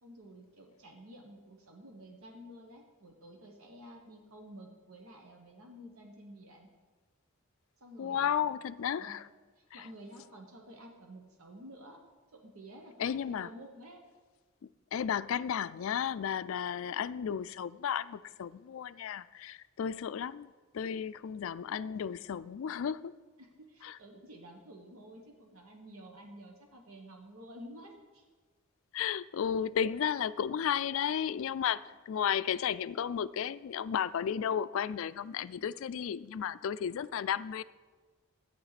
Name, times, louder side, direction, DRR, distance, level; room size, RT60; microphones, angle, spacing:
voice 1, 0.0-6.7 7.8-8.4 9.0-9.2 9.6-12.0 12.3-14.0 23.4-28.2, equal, 80° right, 1 dB, 1.3 m, -51 dB
voice 2, 8.0-9.2 9.7-9.9 13.0-13.5 14.9-23.1 23.8-24.0 28.9-37.6, left 8 dB, 70° left, 16 dB, 0.3 m, -33 dB
13.5 x 9.2 x 4.1 m, 1.4 s
head